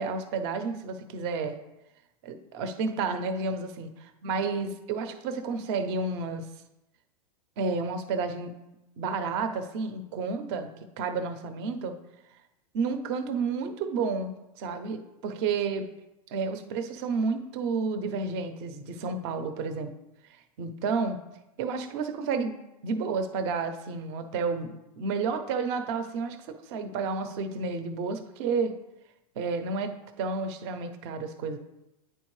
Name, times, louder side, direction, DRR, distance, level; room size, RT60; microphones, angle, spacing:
voice 1, 0.0-1.6 2.2-3.9 4.2-6.5 7.6-8.5 9.0-10.7 11.0-11.9 12.7-15.8 16.3-19.9 20.6-21.2 21.6-22.5 22.8-28.7 29.4-31.6, right 4 dB, 45° right, 8 dB, 0.7 m, -31 dB
9.3 x 4.4 x 3.2 m, 0.95 s
supercardioid pair, 145°, 19 cm